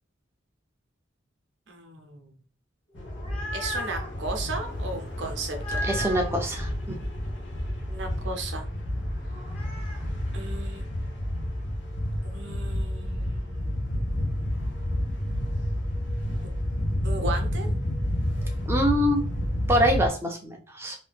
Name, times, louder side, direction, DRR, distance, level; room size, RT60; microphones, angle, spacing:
voice 1, 1.7-2.3 3.5-5.8 7.9-8.7 10.3-10.9 12.2-14.0 16.4-16.6 17.0-17.7, right 2 dB, 65° right, 4 dB, 0.6 m, -36 dB
sound 1, 2.9-20.1, left 1 dB, 65° left, 0.8 m, -30 dB
sound 2, 3.0-4.1 5.5-6.5 9.3-10.0, equal, 30° left, 0.8 m, -36 dB
voice 2, 5.8-6.7 18.7-19.2 19.7-21.0, equal, 15° right, 1 dB, 0.5 m, -24 dB
2.7 x 2.2 x 3.3 m, 0.39 s
head